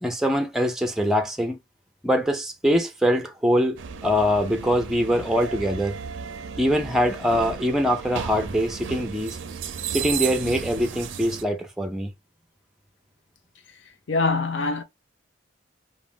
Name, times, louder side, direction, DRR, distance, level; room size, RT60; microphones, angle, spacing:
voice 1, 0.0-1.6 2.0-3.8 4.0-6.0 6.6-9.4 9.9-12.1, equal, ahead, 0.4 m, -23 dB
sound 1, 3.8-11.4, right 7 dB, 80° right, 0.4 m, -34 dB
voice 2, 14.1-14.8, left 3 dB, 75° left, 0.6 m, -23 dB
2.5 x 2.4 x 3.4 m
head